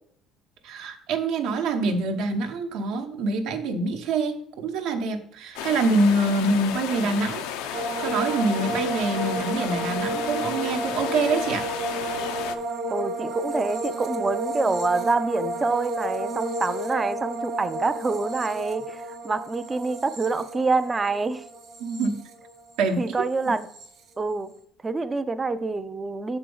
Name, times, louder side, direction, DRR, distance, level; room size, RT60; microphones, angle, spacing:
voice 1, 0.6-11.7 21.8-22.2 22.8-23.3, right 2 dB, 70° right, 0.9 m, -25 dB
sound 1, 5.6-12.6, left 9 dB, 90° left, 0.6 m, -33 dB
sound 2, 7.7-23.0 23.2-23.9, right 1 dB, 45° right, 1.1 m, -32 dB
voice 2, 12.9-21.4 23.0-23.7 24.2-24.5 24.8-26.4, right 3 dB, 15° right, 0.4 m, -26 dB
6.8 x 4.4 x 5.3 m
cardioid pair, 155°, 0 cm